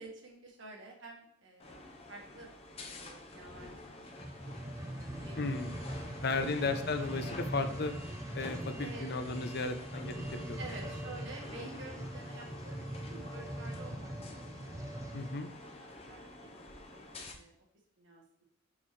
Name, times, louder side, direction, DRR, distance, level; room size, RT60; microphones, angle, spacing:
voice 1, 0.0-2.5 2.8-4.1 4.4-5.4 6.3-6.9 8.8-9.3 10.6-15.3 15.6-15.7 16.1-16.5 16.9-17.5 18.0-18.4, right 2 dB, 65° right, 0 dB, 1.6 m, -50 dB
sound 1, 1.6-17.3, left 1 dB, 30° left, 0.9 m, -48 dB
sound 2, 4.1-15.4 16.0-16.1, right 1 dB, 15° right, 0.5 m, -42 dB
voice 2, 5.4-5.7 6.2-7.9 8.3-10.6 15.1-15.5, left 3 dB, 55° left, 7 dB, 0.7 m, -35 dB
6.4 x 5.5 x 3.2 m, 0.68 s
head